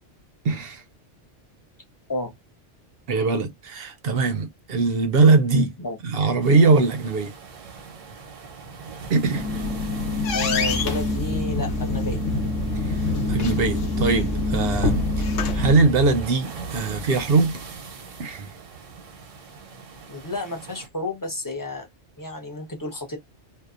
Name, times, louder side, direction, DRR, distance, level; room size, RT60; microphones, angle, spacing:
voice 1, 0.4-0.8 3.1-5.7 6.0-7.3 9.1-9.5 12.8-15.1 15.5-17.6 18.2-18.5, right 3 dB, 60° right, 0.7 m, -21 dB
sound 1, 6.4-20.9, right 4 dB, 90° right, 1.1 m, -41 dB
sound 2, 9.2-15.7, left 3 dB, 80° left, 1.1 m, -25 dB
voice 2, 10.3-12.2 15.6-15.7 20.1-21.9 22.2-23.2, left 2 dB, 25° left, 0.4 m, -31 dB
sound 3, 10.6-16.5, right 4 dB, 25° right, 0.5 m, -33 dB
2.6 x 2.2 x 2.3 m
omnidirectional pair, 1.3 m